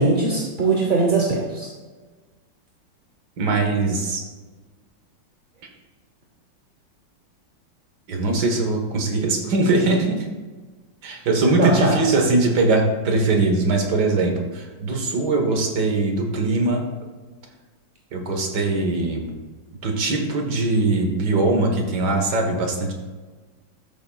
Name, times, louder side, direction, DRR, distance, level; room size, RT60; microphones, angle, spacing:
voice 1, 0.0-1.7 11.6-11.9, right 3 dB, 35° right, -2 dB, 0.9 m, -20 dB
voice 2, 3.4-4.2 8.1-10.2 11.0-16.8 18.1-19.3 19.8-22.9, right 2 dB, 60° right, 2 dB, 1.8 m, -21 dB
13.0 x 6.9 x 2.3 m, 1.3 s
omnidirectional pair, 2.0 m